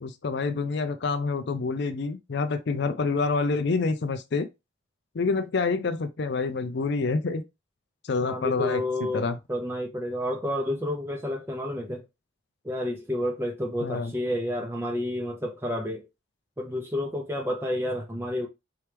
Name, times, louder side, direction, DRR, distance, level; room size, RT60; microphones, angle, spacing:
voice 1, 0.0-4.5 5.1-7.4 8.0-8.8 9.1-9.4 13.8-14.1, left 4 dB, 55° left, 0.4 m, -27 dB
voice 2, 8.2-12.0 12.6-16.0 16.6-18.5, left 1 dB, 10° right, 0.6 m, -30 dB
4.6 x 3.0 x 3.3 m
head